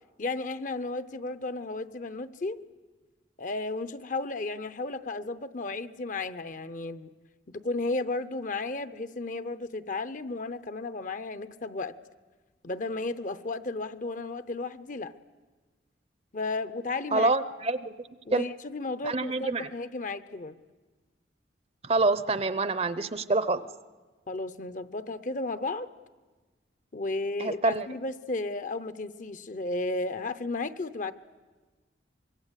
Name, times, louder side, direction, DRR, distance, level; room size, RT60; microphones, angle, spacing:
voice 1, 0.2-2.6 3.4-7.1 7.5-11.9 12.6-15.1 16.3-17.3 18.3-20.6 24.3-25.9 26.9-31.1, left 3 dB, 45° left, 13 dB, 0.7 m, -33 dB
voice 2, 17.1-17.9 18.3-18.5 19.0-19.7 21.8-23.6 27.4-27.9, right 3 dB, 30° right, 14 dB, 0.7 m, -26 dB
25.0 x 22.5 x 8.2 m, 1.3 s
head